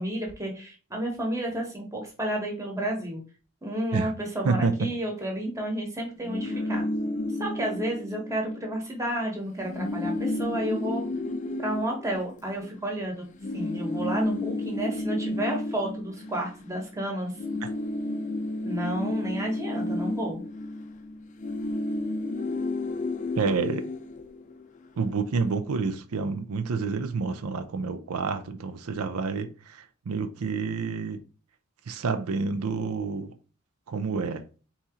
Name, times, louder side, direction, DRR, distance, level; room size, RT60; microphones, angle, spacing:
voice 1, 0.0-3.2 3.6-6.8 7.4-11.0 11.6-13.2 13.5-17.3 18.6-20.4, right 1 dB, 15° right, 1.1 m, -31 dB
voice 2, 4.4-4.8 17.6-17.7 23.4-23.8 25.0-31.2 31.9-33.3 33.9-34.4, right 4 dB, 90° right, 0.5 m, -29 dB
sound 1, 6.2-8.8 9.1-9.2 9.5-12.9 13.4-17.0 17.2-24.8, left 2 dB, 35° left, 0.4 m, -32 dB
4.2 x 2.8 x 3.6 m
head